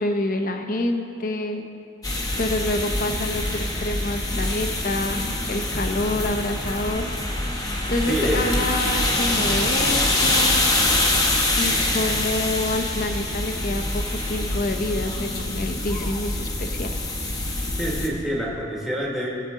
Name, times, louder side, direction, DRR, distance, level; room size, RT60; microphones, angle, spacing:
voice 1, 0.0-1.6 2.4-7.1 7.9-10.7 11.5-17.0, left 1 dB, 40° left, 5 dB, 0.8 m, -27 dB
sound 1, 2.0-18.1, left 2 dB, 20° left, 1.0 m, -25 dB
voice 2, 8.1-8.6 17.8-19.3, equal, ahead, -4 dB, 1.5 m, -26 dB
19.5 x 7.8 x 3.8 m, 2.8 s
head